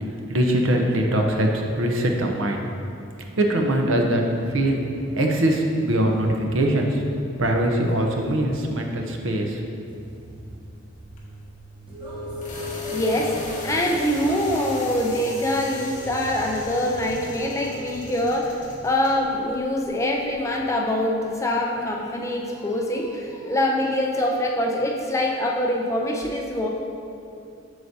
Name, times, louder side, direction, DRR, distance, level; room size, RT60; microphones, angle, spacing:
voice 1, 0.1-2.6 3.4-4.2 4.5-4.8 5.2-7.0 7.4-9.7, right 1 dB, 90° right, 2 dB, 0.8 m, -22 dB
sound 1, 4.3-17.9, left 1 dB, 25° right, 1.2 m, -39 dB
sound 2, 10.2-20.3, left 1 dB, 40° left, 1.2 m, -40 dB
voice 2, 12.7-26.7, left 1 dB, 15° left, 0 dB, 0.5 m, -24 dB
7.9 x 6.6 x 2.8 m, 2.5 s
head